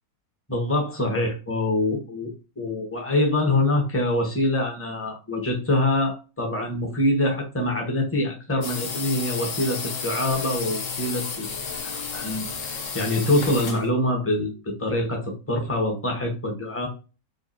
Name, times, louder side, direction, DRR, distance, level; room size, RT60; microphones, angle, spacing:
voice 1, 0.5-11.5 11.8-16.9, left 1 dB, 10° left, 0 dB, 0.9 m, -25 dB
sound 1, 8.6-13.9, left 5 dB, 60° left, 1.1 m, -32 dB
5.1 x 2.7 x 2.7 m, 0.31 s
omnidirectional pair, 1.6 m